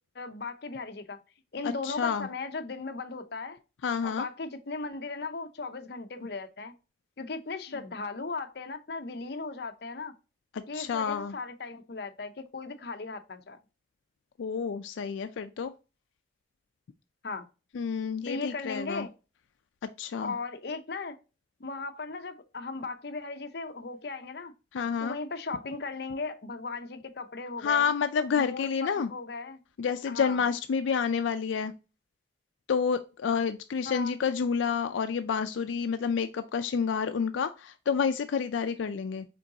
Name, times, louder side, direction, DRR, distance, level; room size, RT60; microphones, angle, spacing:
voice 1, 0.1-1.2 1.5-3.6 4.0-6.7 7.2-10.1 10.7-13.6 17.2-17.4 18.3-19.1 20.2-21.2 21.6-24.5 25.0-27.9 28.4-29.6 30.1-30.4 33.8-34.2, left 3 dB, 60° left, 0.7 m, -37 dB
voice 2, 1.6-2.3 3.8-4.3 10.5-11.3 14.4-15.7 17.7-19.1 20.0-20.3 24.7-25.2 27.6-29.1 29.8-31.7 32.7-39.3, left 6 dB, 90° left, 0.4 m, -29 dB
5.1 x 3.8 x 2.7 m
head